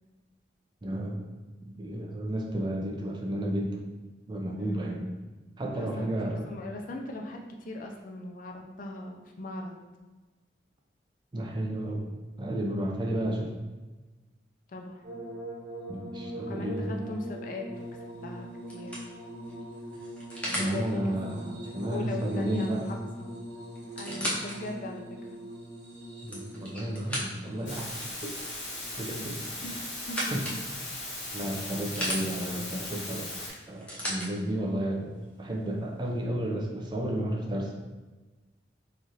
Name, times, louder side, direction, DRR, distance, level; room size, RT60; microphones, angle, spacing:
voice 1, 0.8-1.2 1.8-3.8 4.3-5.1 5.6-6.5 11.3-12.1 12.4-13.5 15.9-17.0 20.5-22.9 26.2-28.4 29.0-29.4 30.3-30.4 31.3-33.3 33.7-35.1 35.4-37.7, right 1 dB, 25° right, 0 dB, 0.5 m, -32 dB
voice 2, 4.6-5.0 5.7-9.8 14.7-15.0 16.5-17.9 18.2-19.2 20.4-21.2 21.9-23.3 24.0-25.4 29.6-29.7 30.1-30.2 30.4-30.6, left 2 dB, 50° left, 2 dB, 0.4 m, -39 dB
sound 1, 15.0-30.3 31.2-31.9 33.3-33.4, right 1 dB, 70° right, 0.9 m, -43 dB
sound 2, 17.8-18.1 18.7-20.8 22.8-22.9 23.1-23.2 23.8-24.6 25.2-25.3 26.0-27.6 29.3-30.6 31.3-32.2 33.4-34.3 35.2-35.3, equal, 5° left, 0.7 m, -35 dB
sound 3, 27.7-33.5, left 2 dB, 70° left, 1.1 m, -38 dB
3.1 x 2.4 x 4.1 m, 1.2 s
head